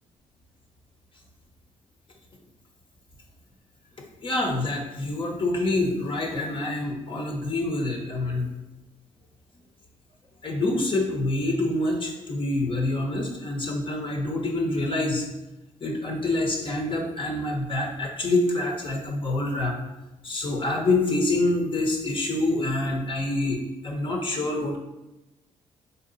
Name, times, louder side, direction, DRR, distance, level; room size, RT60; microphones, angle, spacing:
voice 1, 4.2-8.5 10.4-15.3 15.8-19.8 20.2-24.8, left 2 dB, 40° left, 0 dB, 0.9 m, -26 dB
4.1 x 2.8 x 4.0 m, 1.0 s
cardioid pair, 70°, 13 cm